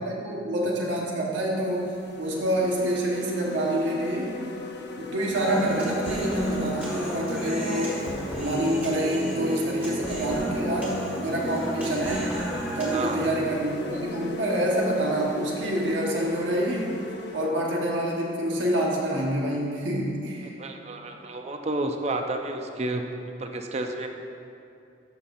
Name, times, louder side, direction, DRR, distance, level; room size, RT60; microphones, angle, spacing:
voice 1, 0.0-4.3 5.0-8.0 8.4-12.3 12.8-20.5, right 1 dB, 85° right, -2 dB, 1.3 m, -27 dB
sound 1, 0.6-0.7 1.3-17.5, left 1 dB, 60° left, 0.6 m, -37 dB
Human voice, 5.3-13.3, right 1 dB, 10° right, 1.6 m, -32 dB
voice 2, 12.9-13.3 20.4-23.1 23.4-24.1, right 2 dB, 35° right, 4 dB, 0.5 m, -31 dB
12.0 x 5.7 x 2.6 m, 2.6 s
head